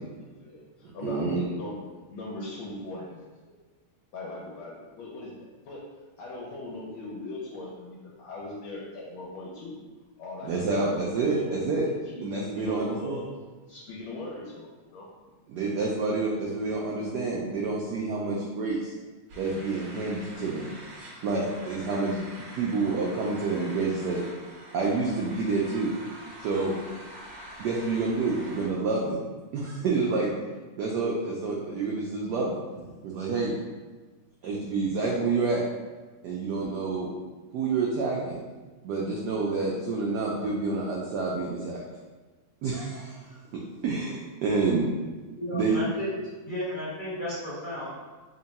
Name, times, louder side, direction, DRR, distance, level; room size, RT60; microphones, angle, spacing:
voice 1, 0.4-3.5 4.1-5.8 6.2-9.8 10.2-10.9 11.2-11.5 11.8-13.3 13.7-15.0, left 2 dB, 80° left, -4 dB, 1.5 m, -39 dB
voice 2, 1.0-1.4 10.4-11.8 12.2-13.2 15.5-18.9 19.4-20.7 21.2-22.2 22.5-24.2 24.7-25.9 26.4-26.7 27.6-29.2 29.5-30.3 30.7-32.6 33.0-33.5 34.4-35.6 36.2-37.1 37.5-38.4 38.8-41.8 42.6-43.4 43.8-44.9 45.5-45.8, right 3 dB, 80° right, -3 dB, 0.9 m, -28 dB
sound 1, 19.3-28.7, right 1 dB, 65° right, 1.4 m, -45 dB
voice 3, 45.4-46.1 46.4-48.0, equal, 30° left, -10 dB, 1.0 m, -33 dB
3.6 x 2.2 x 4.0 m, 1.3 s
omnidirectional pair, 2.3 m